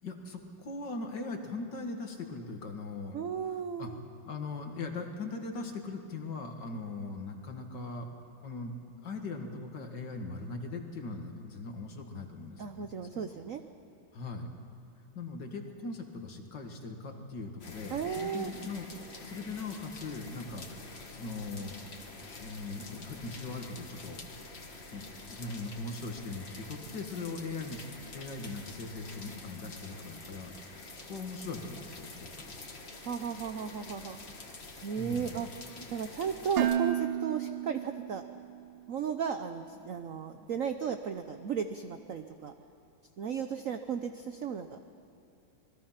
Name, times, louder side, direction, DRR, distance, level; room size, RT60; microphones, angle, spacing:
voice 1, 0.0-3.2 3.8-3.9 4.2-8.1 8.4-8.7 9.0-12.9 13.1-13.3 14.1-14.5 15.1-18.9 19.2-20.8 21.1-21.7 22.4-24.2 24.9-27.9 28.1-32.4 35.0-35.4 35.8-35.9, left 3 dB, 55° left, 4 dB, 2.4 m, -40 dB
voice 2, 3.1-4.0 12.6-13.6 17.9-18.5 33.0-34.2 34.8-35.5 35.9-38.2 38.9-42.5 43.2-44.8, right 7 dB, 65° right, 7 dB, 0.8 m, -35 dB
sound 1, 17.6-36.8, left 3 dB, 30° left, 1.7 m, -47 dB
Dishes pots and pans, 36.6-38.6, right 11 dB, 90° right, 1.7 m, -32 dB
27.0 x 20.5 x 5.8 m, 2.6 s
omnidirectional pair, 2.3 m